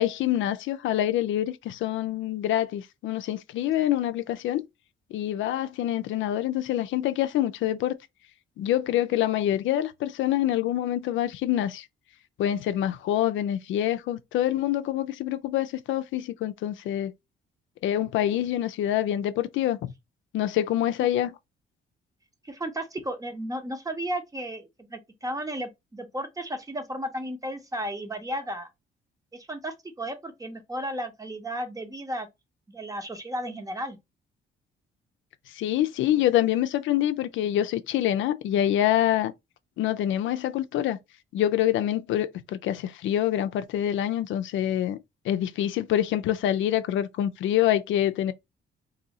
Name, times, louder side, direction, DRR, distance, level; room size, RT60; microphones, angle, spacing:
voice 1, 0.0-4.6 5.1-8.0 8.6-11.9 12.4-17.1 17.8-19.8 20.3-21.3 35.5-39.3 39.8-41.0 41.3-45.0 45.2-48.3, left 12 dB, 75° left, 0.4 m, -26 dB
voice 2, 22.4-28.7 29.3-32.3 32.7-34.0, right 1 dB, 15° right, 0.9 m, -34 dB
2.7 x 2.7 x 4.0 m
cardioid pair, 90°, 20 cm